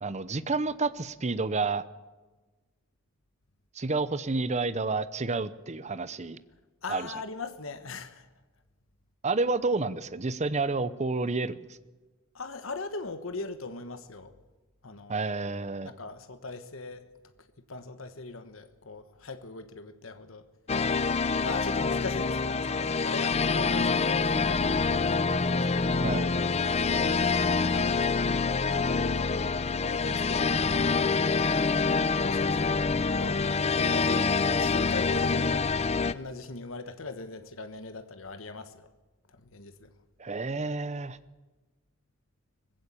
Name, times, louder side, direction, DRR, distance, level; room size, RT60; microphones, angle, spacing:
voice 1, 0.0-1.8 3.8-6.4 6.9-7.1 9.2-11.6 15.1-15.9 26.0-26.3 40.2-41.2, right 3 dB, 35° right, 15 dB, 0.8 m, -30 dB
voice 2, 6.8-8.3 12.3-14.3 14.8-15.1 15.8-17.1 17.7-20.4 21.4-25.1 25.4-26.5 26.9-28.3 28.7-29.5 29.9-30.9 32.1-32.9 33.2-34.3 34.6-35.8 36.1-38.9 39.3-39.9, left 3 dB, 80° left, 10 dB, 1.3 m, -40 dB
sound 1, 20.7-36.1, left 4 dB, 30° left, 0.6 m, -26 dB
20.0 x 15.5 x 8.5 m, 1.2 s
head